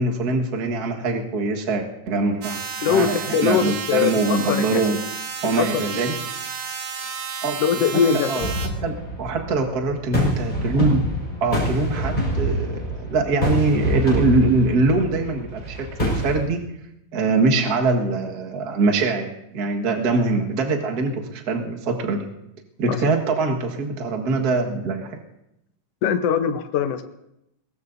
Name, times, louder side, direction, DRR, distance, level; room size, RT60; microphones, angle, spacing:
voice 1, 0.0-2.6 2.9-3.2 3.4-5.0 5.4-6.1 7.4-7.6 8.3-8.5 8.8-11.0 11.4-16.6 17.1-22.3 22.8-25.2, right 3 dB, 40° right, 1 dB, 1.5 m, -23 dB
sound 1, 2.4-8.7, right 6 dB, 65° right, 2.5 m, -32 dB
voice 2, 2.8-4.8 5.6-6.0 7.6-8.5 22.9-23.0 26.0-27.0, left 7 dB, 70° left, 8 dB, 1.5 m, -22 dB
sound 2, 8.4-16.4, equal, 15° left, 5.0 m, -26 dB
22.5 x 19.0 x 2.7 m, 0.83 s
omnidirectional pair, 3.8 m